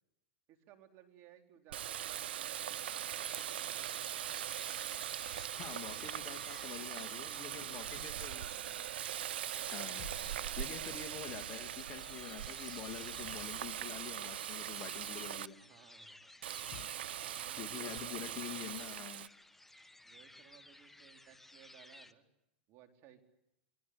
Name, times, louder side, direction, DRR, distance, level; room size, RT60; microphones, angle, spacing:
voice 1, 0.5-4.3 4.9-5.1 5.5-6.2 6.8-8.4 15.6-16.3 17.2-18.4 20.0-22.3 22.7-23.3, right 10 dB, 45° right, 6 dB, 4.3 m, -61 dB
Water tap faucet, 1.7-15.5 16.4-19.3, right 11 dB, 75° right, 0.9 m, -41 dB
sound 1, 2.7-22.1, left 1 dB, 5° left, 1.3 m, -57 dB
voice 2, 5.6-8.5 9.7-10.1 10.6-15.6 17.6-19.3, left 10 dB, 35° left, 7 dB, 2.4 m, -46 dB
sound 2, 8.5-8.9 9.7-11.1 11.8-14.2 16.5-17.5, left 12 dB, 50° left, 1.7 m, -57 dB
28.0 x 22.0 x 8.0 m, 0.85 s
hypercardioid pair, 115°, 6 cm